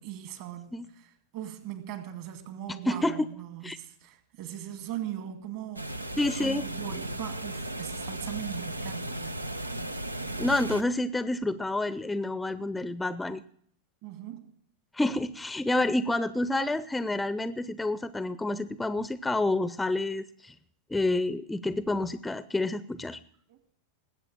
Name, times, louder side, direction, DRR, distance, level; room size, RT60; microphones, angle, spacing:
voice 1, 0.0-9.5 14.0-14.5 23.5-23.6, right 11 dB, 50° right, 8 dB, 2.2 m, -40 dB
voice 2, 2.9-3.3 3.6-3.8 6.2-6.6 10.4-13.4 14.9-20.5 20.9-23.2, left 2 dB, 5° left, 15 dB, 0.7 m, -28 dB
sound 1, 5.8-10.8, right 1 dB, 85° right, 0.7 m, -36 dB
20.0 x 8.4 x 7.3 m, 0.62 s
figure-of-eight pair, 90°, 0 cm